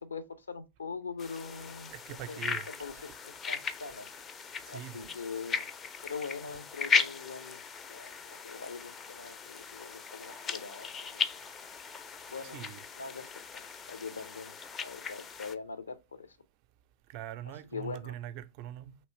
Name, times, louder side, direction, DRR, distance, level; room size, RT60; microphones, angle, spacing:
voice 1, 0.0-1.9 2.3-4.1 4.7-5.7 6.0-7.6 7.9-11.2 12.3-16.4 17.4-18.1, left 5 dB, 75° left, 0.5 m, -43 dB
sound 1, 1.2-15.5, left 5 dB, 25° left, 0.4 m, -37 dB
voice 2, 1.8-2.7 3.0-3.1 4.6-5.1 12.5-12.8 17.1-19.0, right 12 dB, 45° right, 0.4 m, -42 dB
3.1 x 3.0 x 4.2 m
figure-of-eight pair, 90°, 0 cm